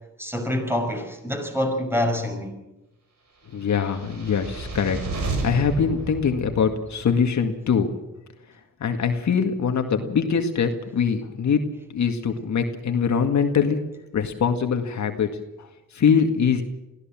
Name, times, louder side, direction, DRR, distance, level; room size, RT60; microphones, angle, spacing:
voice 1, 0.2-2.6, left 1 dB, 5° right, 5 dB, 5.7 m, -26 dB
voice 2, 3.5-5.0 5.4-7.9 8.8-11.6 11.9-13.8 14.1-15.3 15.6-15.7 15.9-16.6, left 6 dB, 60° left, 5 dB, 2.0 m, -23 dB
sound 1, 3.7-7.1, right 3 dB, 60° right, 6.3 m, -32 dB
22.0 x 15.5 x 7.5 m, 0.98 s
cardioid pair, 65°, 32 cm